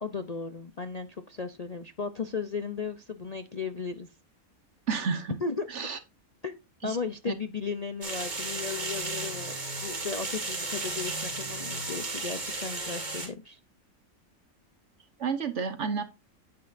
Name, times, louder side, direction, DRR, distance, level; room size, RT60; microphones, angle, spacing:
voice 1, 0.0-4.1 5.4-5.7 6.4-9.6 9.8-13.6, left 5 dB, 40° left, 0.6 m, -35 dB
voice 2, 4.9-5.4 5.7-6.0 6.8-7.0 7.3-7.4 15.2-16.0, right 5 dB, 55° right, 1.3 m, -30 dB
sound 1, 8.0-13.3, right 2 dB, 30° right, 2.9 m, -34 dB
10.0 x 9.5 x 2.6 m
omnidirectional pair, 1.6 m